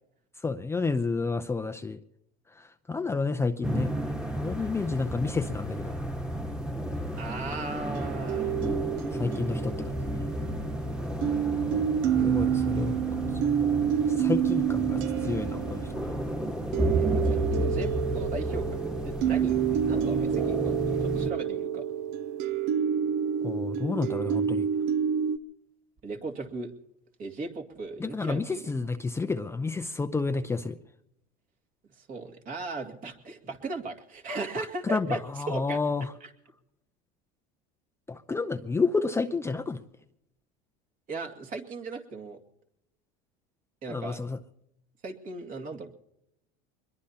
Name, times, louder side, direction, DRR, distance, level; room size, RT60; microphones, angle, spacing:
voice 1, 0.4-2.0 2.6-3.9 4.4-5.9 9.1-9.9 12.1-13.2 14.2-16.1 23.4-24.6 28.0-30.8 34.6-36.1 38.1-39.8 43.9-44.4, left 4 dB, 10° left, 7 dB, 0.6 m, -30 dB
sound 1, 3.6-21.3, equal, 5° right, 1.5 m, -32 dB
voice 2, 7.2-8.5 17.0-21.8 26.0-26.7 27.2-28.7 32.0-35.2 35.5-35.8 36.2-36.3 41.1-42.4 43.8-44.2 45.0-45.9, right 3 dB, 40° right, 4 dB, 2.4 m, -37 dB
sound 2, 7.9-10.8 11.2-25.4, right 9 dB, 65° right, 0.8 m, -28 dB
23.5 x 21.5 x 2.9 m, 0.82 s
supercardioid pair, 115°, 21 cm